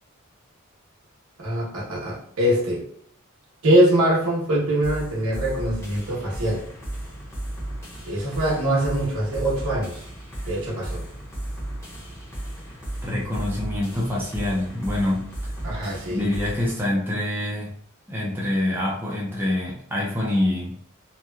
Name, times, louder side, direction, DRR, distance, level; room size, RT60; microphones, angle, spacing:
voice 1, 1.4-2.8 3.6-6.6 8.1-10.0 10.4-11.0 15.6-16.2, right 1 dB, 75° right, -4 dB, 0.9 m, -23 dB
sound 1, 4.8-16.8, right 1 dB, 15° left, 0.8 m, -35 dB
voice 2, 13.0-15.3 16.1-17.7 18.1-20.8, left 1 dB, 10° right, -4 dB, 0.4 m, -25 dB
2.9 x 2.2 x 2.2 m, 0.63 s
head